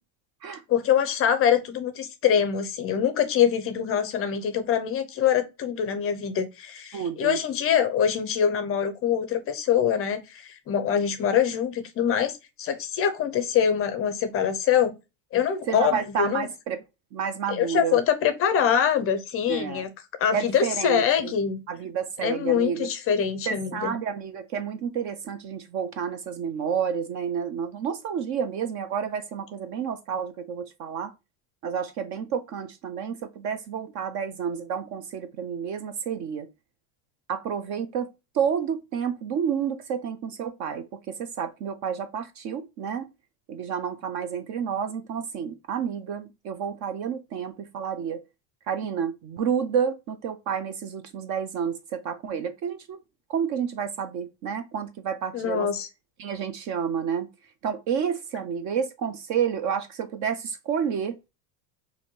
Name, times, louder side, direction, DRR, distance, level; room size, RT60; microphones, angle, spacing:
voice 1, 0.7-12.3 12.6-15.0 15.3-16.5 17.5-19.9 20.2-21.6 22.2-23.9 55.3-55.9, left 8 dB, 30° left, 0.5 m, -24 dB
voice 2, 6.9-7.4 15.7-16.8 17.1-18.0 19.5-19.8 20.3-21.3 21.7-22.9 23.5-31.1 31.6-36.5 37.3-38.1 38.3-43.1 43.5-48.2 48.7-53.0 53.3-55.7 56.2-57.3 57.6-61.3, right 7 dB, 40° right, 0.4 m, -30 dB
4.2 x 2.7 x 2.8 m
supercardioid pair, 135°, 46 cm